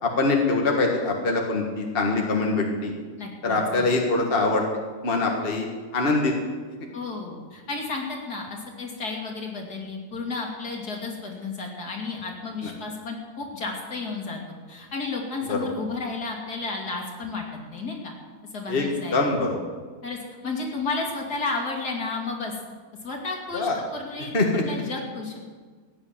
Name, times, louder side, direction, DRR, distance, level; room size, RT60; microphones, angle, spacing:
voice 1, 0.0-2.9 3.4-4.6 5.0-5.7 5.9-6.3 15.5-15.6 18.7-18.9 19.1-19.6 23.5-23.8 24.3-24.6, left 3 dB, 35° left, 1 dB, 1.8 m, -23 dB
voice 2, 3.2-3.9 6.9-14.4 14.7-18.1 18.5-19.3 20.0-20.2 20.4-22.5 23.0-25.4, left 3 dB, 70° left, 0 dB, 3.0 m, -32 dB
15.5 x 9.9 x 7.3 m, 1.5 s
omnidirectional pair, 1.7 m